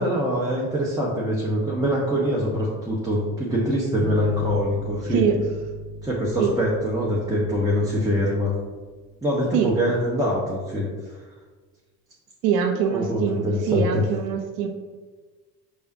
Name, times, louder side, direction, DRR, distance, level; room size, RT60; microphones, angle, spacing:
voice 1, 0.0-5.2 6.0-8.5 9.2-10.9 12.9-14.0, equal, 5° right, -6 dB, 1.0 m, -24 dB
sound 1, 4.0-9.1, left 1 dB, 40° right, 0.9 m, -36 dB
voice 2, 5.1-5.4 6.4-6.5 9.5-9.7 12.4-13.4 13.7-14.7, right 7 dB, 75° right, 4 dB, 0.8 m, -23 dB
5.7 x 3.4 x 2.7 m, 1.4 s
hypercardioid pair, 65°, 49 cm